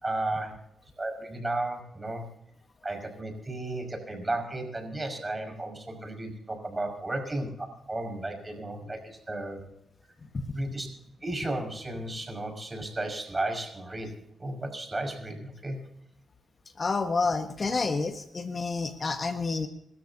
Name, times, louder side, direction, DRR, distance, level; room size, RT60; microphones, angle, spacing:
voice 1, 0.0-0.6 1.0-2.2 2.8-9.0 9.3-9.6 10.5-10.9 11.2-14.1 14.4-15.8, right 2 dB, 25° right, 4 dB, 5.6 m, -34 dB
voice 2, 10.3-10.7 16.8-19.7, left 4 dB, 45° left, 7 dB, 1.4 m, -29 dB
26.5 x 13.5 x 2.8 m, 0.79 s
cardioid pair, 60°, 0 cm